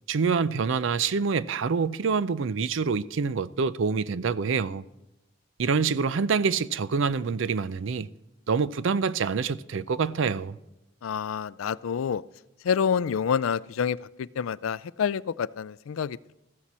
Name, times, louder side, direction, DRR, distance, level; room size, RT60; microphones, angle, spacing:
voice 1, 0.1-4.8 5.6-8.1 8.5-10.6, right 5 dB, 70° right, 0.5 m, -26 dB
voice 2, 11.0-12.2 12.6-16.3, left 7 dB, 85° left, 0.4 m, -28 dB
14.5 x 14.5 x 4.3 m
head